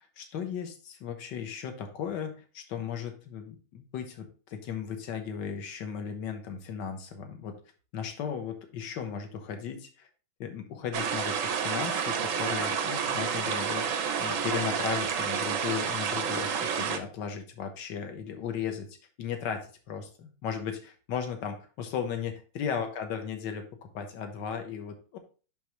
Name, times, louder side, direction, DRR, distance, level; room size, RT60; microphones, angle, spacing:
voice 1, 0.2-7.6 7.9-10.1 10.4-13.9 14.2-25.2, left 7 dB, 60° left, 6 dB, 1.6 m, -36 dB
sound 1, 10.9-17.0, right 7 dB, 65° right, 0.8 m, -30 dB
11.0 x 3.6 x 3.0 m, 0.37 s
omnidirectional pair, 2.3 m